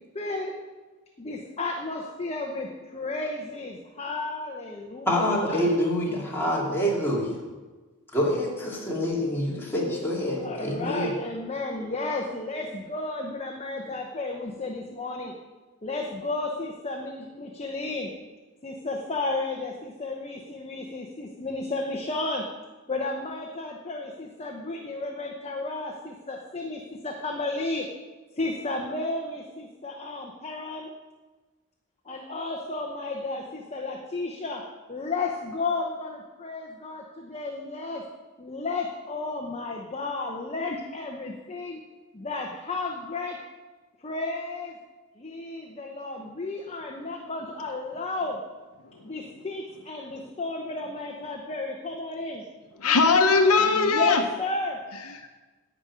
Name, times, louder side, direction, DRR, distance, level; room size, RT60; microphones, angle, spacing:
voice 1, 0.1-0.5 1.2-5.7 6.4-6.5 10.4-15.3 15.8-18.1 18.6-22.4 22.9-27.9 28.4-30.9 32.1-34.6 34.9-38.0 38.4-41.8 42.1-43.4 44.0-44.8 45.2-48.4 49.0-52.4 52.8-53.1 53.6-54.8, left 3 dB, 30° left, 1 dB, 0.8 m, -33 dB
voice 2, 5.1-7.4 8.1-11.1, equal, 10° left, -5 dB, 2.5 m, -26 dB
voice 3, 52.8-54.2 55.0-55.4, left 4 dB, 75° left, 5 dB, 0.9 m, -21 dB
11.0 x 5.2 x 8.5 m, 1.3 s
head